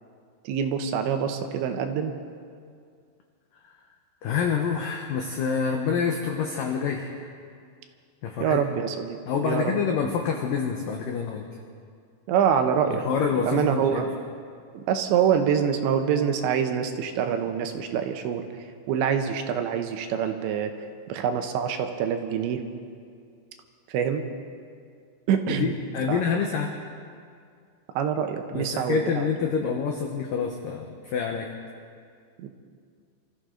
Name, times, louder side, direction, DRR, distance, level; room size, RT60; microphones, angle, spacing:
voice 1, 0.4-2.1 8.4-9.2 9.4-9.7 12.3-13.0 13.3-14.1 14.7-18.5 18.9-20.7 21.1-22.6 23.9-24.2 25.3-25.7 26.1-26.4 28.0-29.3 29.7-29.8 32.4-32.5, right 8 dB, 80° right, 6 dB, 3.1 m, -25 dB
voice 2, 4.2-7.3 8.2-8.6 9.3-11.5 12.9-14.1 25.5-26.7 28.5-31.5, left 6 dB, 85° left, 2 dB, 1.9 m, -27 dB
26.0 x 14.0 x 3.8 m, 2.2 s
omnidirectional pair, 5.3 m